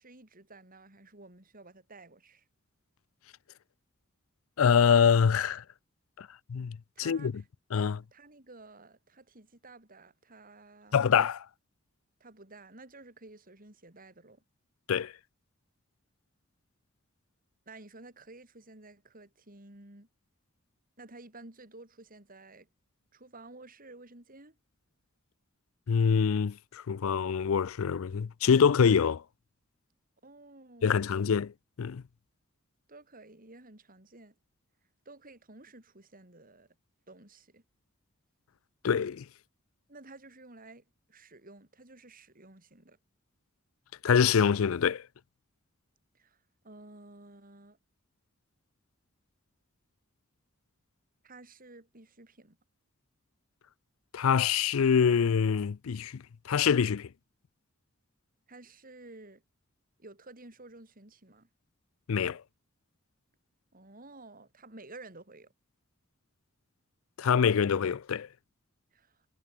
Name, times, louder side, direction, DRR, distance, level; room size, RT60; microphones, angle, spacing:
voice 1, 0.0-2.4 7.0-7.5 7.8-11.0 12.2-14.4 17.7-20.1 21.0-22.7 23.1-24.6 30.2-31.3 32.9-34.3 35.0-36.7 37.1-37.6 39.9-43.0 46.1-46.4 46.6-47.8 51.2-52.6 58.5-59.4 60.0-61.5 63.7-65.5 68.9-69.2, right 2 dB, 45° right, 4.6 m, -52 dB
voice 2, 4.6-5.6 6.2-7.4 7.7-8.0 10.9-11.5 14.9-15.1 25.9-29.2 30.8-31.5 31.8-32.0 38.8-39.3 44.0-45.0 54.1-57.1 62.1-62.4 67.2-68.3, left 6 dB, 85° left, 0.5 m, -25 dB
head